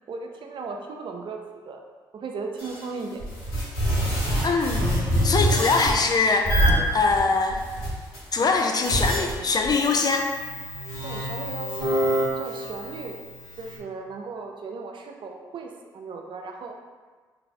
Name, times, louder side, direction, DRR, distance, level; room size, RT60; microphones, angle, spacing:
voice 1, 0.1-1.8 2.1-3.2 11.0-12.0 12.4-13.2 13.6-16.8, right 4 dB, 55° right, 2 dB, 0.5 m, -36 dB
sound 1, 2.6-2.8 3.2-6.1 6.4-8.2 8.8-9.3 9.6-13.8, equal, 85° left, 1.0 m, -26 dB
voice 2, 4.4-4.9 5.2-6.5 6.9-7.6 8.3-10.3, left 4 dB, 40° left, 4 dB, 0.4 m, -22 dB
3.3 x 2.5 x 3.2 m, 1.5 s
hypercardioid pair, 45°, 10 cm